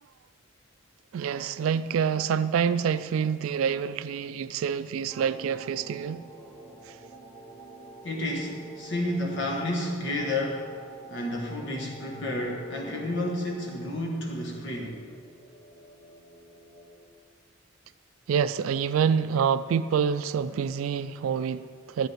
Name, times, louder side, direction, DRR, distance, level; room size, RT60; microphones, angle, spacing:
voice 1, 1.1-6.3 18.3-22.1, right 7 dB, 75° right, 0.3 m, -27 dB
sound 1, 5.1-17.1, right 3 dB, 5° left, 1.3 m, -48 dB
voice 2, 8.0-10.7 11.1-15.0, left 1 dB, 60° left, 1.5 m, -31 dB
12.0 x 5.5 x 8.9 m
head